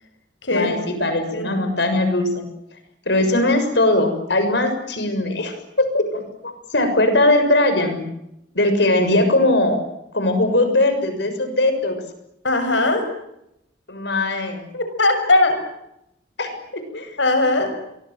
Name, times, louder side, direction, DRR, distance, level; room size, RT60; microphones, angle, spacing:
voice 1, 0.5-2.4 3.0-8.0 8.5-9.8 10.1-12.0 13.9-14.6 16.4-17.1, left 2 dB, 70° left, 8 dB, 6.9 m, -20 dB
voice 2, 12.4-13.0 14.7-15.5 17.2-17.7, left 2 dB, 85° left, 8 dB, 6.7 m, -18 dB
30.0 x 24.0 x 7.9 m, 0.82 s
head